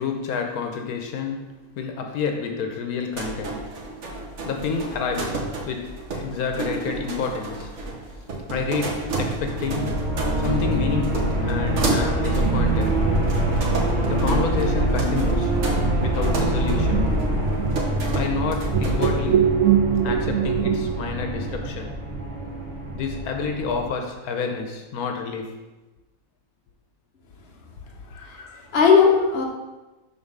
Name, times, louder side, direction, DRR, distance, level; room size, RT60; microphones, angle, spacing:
voice 1, 0.0-7.7 8.5-13.0 14.1-15.5 16.0-17.1 18.1-19.4 20.0-22.0 22.9-25.5 28.0-28.2, left 5 dB, 85° left, 4 dB, 1.2 m, -29 dB
sound 1, 3.1-19.2, right 2 dB, 55° right, 1.2 m, -32 dB
sound 2, 9.0-23.9, right 1 dB, 35° right, 1.4 m, -25 dB
sound 3, 12.4-20.9, right 7 dB, 75° right, 1.0 m, -26 dB
voice 2, 28.1-29.4, left 6 dB, 45° left, 0 dB, 1.1 m, -18 dB
5.6 x 3.9 x 5.3 m, 1.1 s
omnidirectional pair, 1.5 m